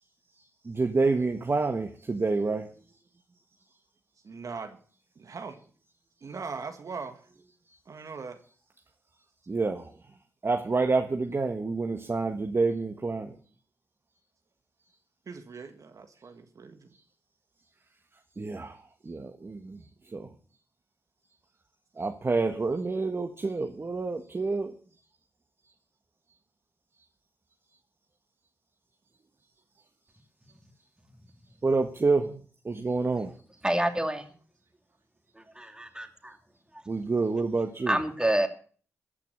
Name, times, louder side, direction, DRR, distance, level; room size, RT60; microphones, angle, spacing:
voice 1, 0.6-2.7 9.5-9.9 10.4-13.3 18.4-18.8 19.0-19.8 20.1-20.3 22.0-24.7 31.6-33.3 36.9-38.0, right 3 dB, 40° right, 5 dB, 1.5 m, -28 dB
voice 2, 4.2-4.8 5.2-5.6 6.2-7.3 7.9-8.4 15.3-16.9, right 4 dB, 60° right, 6 dB, 1.8 m, -40 dB
voice 3, 33.6-34.3 35.4-36.4 36.7-36.8 37.9-38.5, right 1 dB, 10° right, 6 dB, 2.7 m, -28 dB
14.0 x 5.9 x 9.6 m, 0.44 s
cardioid pair, 50°, 6 cm